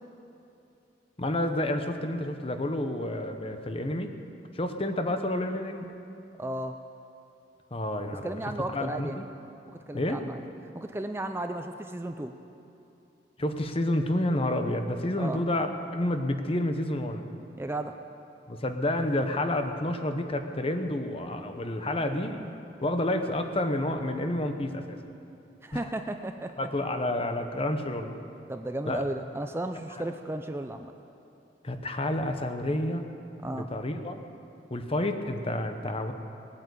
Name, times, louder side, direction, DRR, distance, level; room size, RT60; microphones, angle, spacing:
voice 1, 1.2-4.1 4.5-5.8 7.7-8.4 8.7-9.3 9.9-10.2 13.4-15.7 15.9-17.3 18.5-22.5 22.8-25.0 25.7-25.9 26.6-28.1 28.9-29.0 30.0-30.1 31.6-33.0 33.4-34.2 34.7-36.1, left 1 dB, 35° left, 6 dB, 1.0 m, -29 dB
voice 2, 6.4-6.8 8.2-9.2 9.7-10.4 10.7-12.3 15.2-15.4 17.6-17.9 25.6-26.5 28.5-30.9 33.4-33.7, right 1 dB, 15° right, 6 dB, 0.5 m, -34 dB
19.0 x 8.7 x 8.2 m, 2.8 s
head